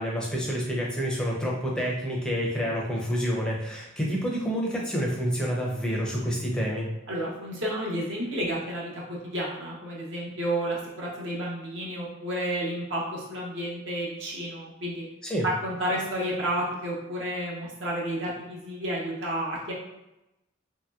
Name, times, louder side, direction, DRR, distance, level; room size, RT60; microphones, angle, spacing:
voice 1, 0.0-6.9 15.2-15.4, equal, 5° left, -3 dB, 0.5 m, -28 dB
voice 2, 7.1-15.1 15.4-19.7, right 1 dB, 60° right, -4 dB, 0.8 m, -31 dB
2.9 x 2.8 x 2.3 m, 0.91 s
head